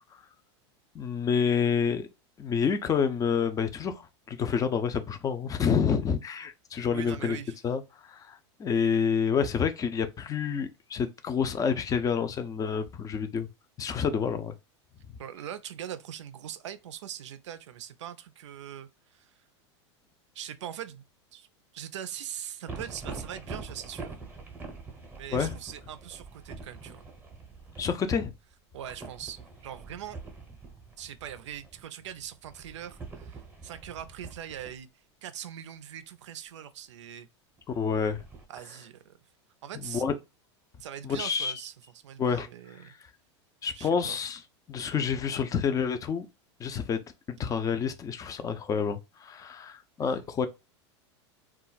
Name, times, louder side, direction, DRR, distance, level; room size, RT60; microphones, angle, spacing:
voice 1, 0.9-2.1 2.4-7.4 7.6-13.5 13.8-14.5 25.3-25.5 27.8-28.3 37.8-38.2 39.8-40.1 41.0-41.5 42.2-42.5 43.6-44.4 44.7-46.3 46.6-47.0 47.3-50.5, left 6 dB, 25° left, 0.4 m, -28 dB
voice 2, 6.9-7.6 15.2-19.3 20.3-21.0 21.3-21.5 21.7-24.1 25.1-27.0 28.7-30.2 31.0-34.9 35.2-37.3 38.5-39.2 39.6-40.0 40.8-42.9 43.7-44.2 50.1-50.2, right 10 dB, 85° right, 0.4 m, -41 dB
sound 1, 22.7-27.9 28.8-34.7 37.6-38.4, right 4 dB, 15° right, 0.7 m, -44 dB
2.3 x 2.0 x 3.8 m
hypercardioid pair, 100°, 15 cm